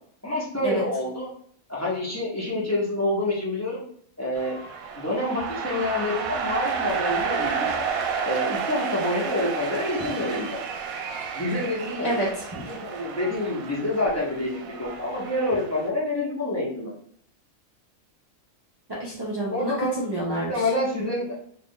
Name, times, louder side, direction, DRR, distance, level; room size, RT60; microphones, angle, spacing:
voice 1, 0.2-1.3 1.7-3.8 4.2-4.6 4.9-7.8 8.2-10.6 11.3-12.2 12.7-16.9 19.5-20.0 20.3-21.3, left 1 dB, 15° left, -6 dB, 0.7 m, -27 dB
sound 1, 4.4-15.9, right 6 dB, 80° right, 1.0 m, -31 dB
voice 2, 12.0-12.7 18.9-20.5, right 1 dB, 40° right, -5 dB, 0.3 m, -28 dB
2.6 x 2.5 x 3.6 m, 0.63 s
omnidirectional pair, 1.5 m